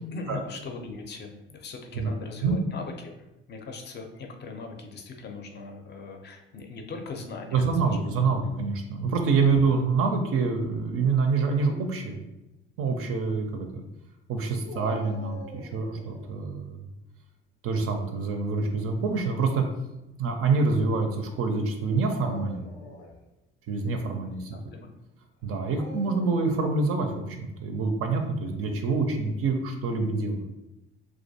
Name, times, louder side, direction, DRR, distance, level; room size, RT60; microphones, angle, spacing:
voice 1, 0.1-8.1 24.5-24.9, left 4 dB, 35° left, 4 dB, 0.5 m, -40 dB
voice 2, 7.5-12.2 12.8-13.8 14.3-16.8 17.6-19.6 20.2-22.7 23.7-24.6 25.4-30.5, right 4 dB, 50° right, 4 dB, 0.4 m, -26 dB
Dog, 14.7-16.3 18.4-18.9 19.7-19.8 21.9-23.2 25.6-26.6, left 1 dB, 80° left, 0.5 m, -43 dB
2.3 x 2.1 x 2.7 m, 0.94 s
hypercardioid pair, 60°, 30 cm